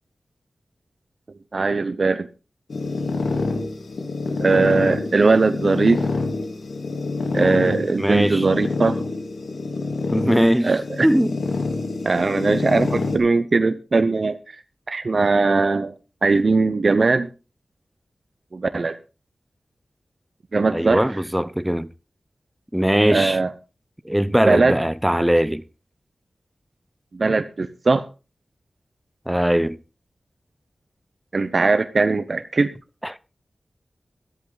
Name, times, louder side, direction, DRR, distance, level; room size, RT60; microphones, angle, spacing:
voice 1, 1.5-2.3 4.4-6.1 7.3-9.0 10.6-11.1 12.0-14.6 14.9-15.9 16.2-17.3 18.5-19.0 20.5-21.0 23.1-23.5 24.2-24.8 27.1-28.0 31.3-32.7, right 3 dB, 50° right, 0.8 m, -20 dB
sound 1, 2.7-13.2, left 3 dB, 75° left, 3.2 m, -27 dB
voice 2, 8.0-8.4 10.1-10.7 11.0-11.3 20.7-21.9 22.7-23.4 24.0-25.6 29.3-29.8 33.0-33.2, equal, 5° right, 0.6 m, -20 dB
14.0 x 13.5 x 4.0 m
wide cardioid pair, 115°, 0 cm